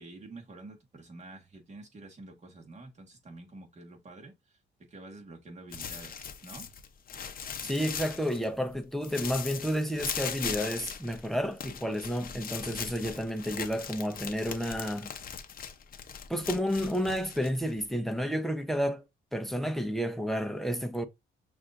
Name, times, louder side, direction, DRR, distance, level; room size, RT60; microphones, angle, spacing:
voice 1, 0.0-4.6 4.9-6.7, right 2 dB, 35° right, 1.5 m, -48 dB
sound 1, 5.7-8.7 9.0-18.0, left 7 dB, 45° left, 0.7 m, -39 dB
voice 2, 7.6-15.1 16.3-19.0 19.3-21.1, equal, ahead, 0.7 m, -31 dB
6.2 x 2.6 x 2.5 m
cardioid pair, 90°, 20 cm